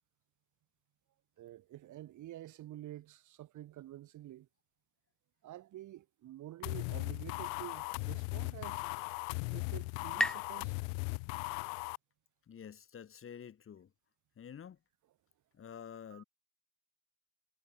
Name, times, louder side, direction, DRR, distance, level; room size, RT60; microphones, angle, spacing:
voice 1, 1.4-4.5 5.4-8.9 9.5-10.7 16.1-16.2, right 14 dB, 55° right, 2.4 m, -49 dB
sound 1, 6.6-12.0, left 39 dB, 90° left, 0.9 m, -38 dB
sound 2, 12.1-12.2, left 1 dB, ahead, 1.0 m, -41 dB
voice 2, 12.5-13.9 14.4-14.8 15.5-16.2, left 8 dB, 35° left, 3.2 m, -49 dB
supercardioid pair, 105°, 36 cm